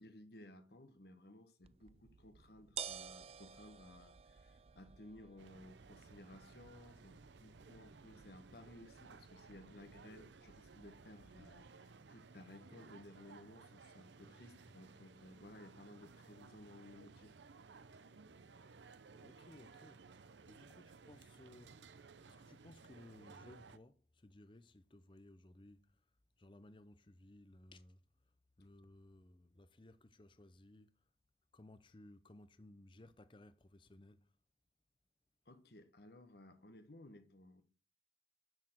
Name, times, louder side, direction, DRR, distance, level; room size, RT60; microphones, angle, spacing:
voice 1, 0.0-17.3 35.5-37.6, left 1 dB, 60° left, 1.2 m, -58 dB
sound 1, 1.6-11.7, right 8 dB, 35° right, 0.3 m, -54 dB
sound 2, 5.4-23.8, right 4 dB, 80° right, 0.6 m, -59 dB
voice 2, 19.1-20.0 20.5-26.0 26.4-28.0 28.6-31.0 31.5-34.3, left 1 dB, 25° left, 0.6 m, -60 dB
6.7 x 6.2 x 7.5 m
head